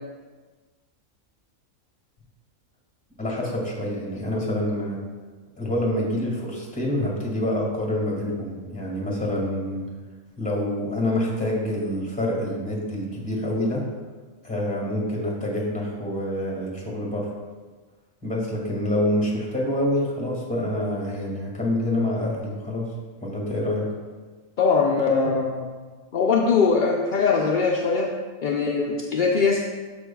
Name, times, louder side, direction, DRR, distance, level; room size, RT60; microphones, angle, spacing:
voice 1, 3.2-5.0 5.6-9.9 10.4-13.9 14.4-17.3 18.2-22.9 23.2-23.9, left 1 dB, 5° left, -3 dB, 2.1 m, -26 dB
voice 2, 24.6-25.7 26.1-28.1 28.4-29.6, left 5 dB, 55° left, -1 dB, 0.6 m, -21 dB
13.0 x 5.3 x 2.3 m, 1.4 s
omnidirectional pair, 1.4 m